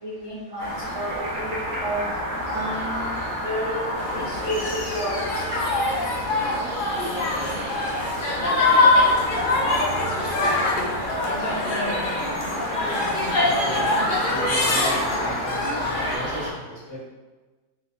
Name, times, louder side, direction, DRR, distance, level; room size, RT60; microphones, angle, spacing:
voice 1, 0.0-2.0 2.4-3.1 3.4-5.4 11.4-11.5, equal, 25° right, -10 dB, 0.8 m, -31 dB
sound 1, 0.6-16.5, equal, 60° right, 1.3 m, -30 dB
sound 2, 4.0-16.2, left 2 dB, 55° left, 0.6 m, -24 dB
voice 2, 13.4-17.0, equal, 20° left, -9 dB, 1.3 m, -36 dB
3.4 x 3.1 x 4.0 m, 1.3 s
omnidirectional pair, 1.6 m